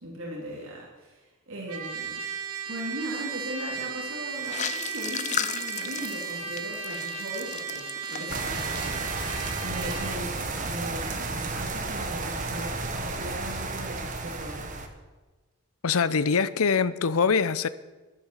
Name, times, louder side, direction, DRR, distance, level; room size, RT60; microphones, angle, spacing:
voice 1, 0.0-2.2 2.7-14.7, right 1 dB, 65° right, 3.1 m, -38 dB
Trumpet, 1.7-10.2, right 7 dB, 90° right, 1.6 m, -35 dB
sound 1, 4.3-10.1 10.3-10.7, left 9 dB, 30° left, 0.4 m, -36 dB
sound 2, 8.3-14.9, right 3 dB, 35° right, 1.3 m, -32 dB
voice 2, 15.8-17.7, left 5 dB, 75° left, 0.6 m, -23 dB
12.0 x 11.5 x 7.3 m
head